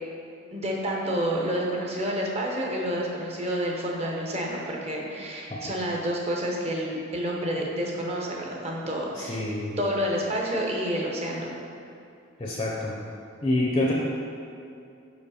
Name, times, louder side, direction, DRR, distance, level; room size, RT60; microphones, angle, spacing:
voice 1, 0.5-9.4 9.8-11.5, equal, 30° right, -1 dB, 0.8 m, -29 dB
voice 2, 9.2-9.8 12.4-13.0 13.4-13.9, left 1 dB, 25° left, -3 dB, 0.5 m, -27 dB
5.1 x 4.8 x 4.8 m, 2.6 s
head